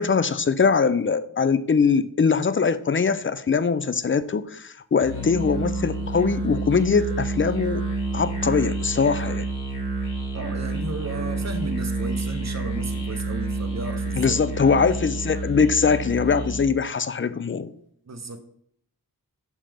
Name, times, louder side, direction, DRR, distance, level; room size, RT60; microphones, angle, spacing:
voice 1, 0.0-7.9 8.1-9.5 14.2-17.7, left 5 dB, 35° left, 14 dB, 0.4 m, -22 dB
Musical instrument, 5.0-16.7, right 3 dB, 60° left, 2.6 m, -29 dB
voice 2, 10.3-14.4 18.1-18.4, right 2 dB, 50° right, 7 dB, 0.9 m, -34 dB
6.2 x 5.7 x 3.5 m, 0.66 s
wide cardioid pair, 55°, 36 cm